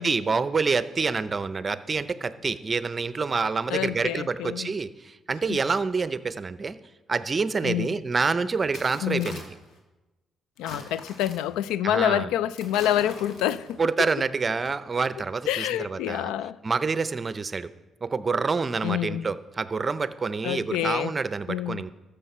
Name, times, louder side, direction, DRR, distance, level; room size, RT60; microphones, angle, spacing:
voice 1, 0.0-6.8 7.1-9.4 11.8-12.3 13.8-16.3 16.6-17.7 18.0-21.9, right 4 dB, 35° right, 0.6 m, -27 dB
voice 2, 3.7-4.7 5.5-5.6 7.6-8.0 9.0-9.4 10.6-13.8 15.5-16.6 18.8-19.3 20.4-21.1 21.5-21.9, left 11 dB, 85° left, 0.3 m, -27 dB
sound 1, 7.6-7.7 8.6-9.8 10.6-11.6 12.6-13.9 14.5-14.7, left 2 dB, 70° left, 2.2 m, -43 dB
13.5 x 6.7 x 5.5 m
supercardioid pair, 70°, 0 cm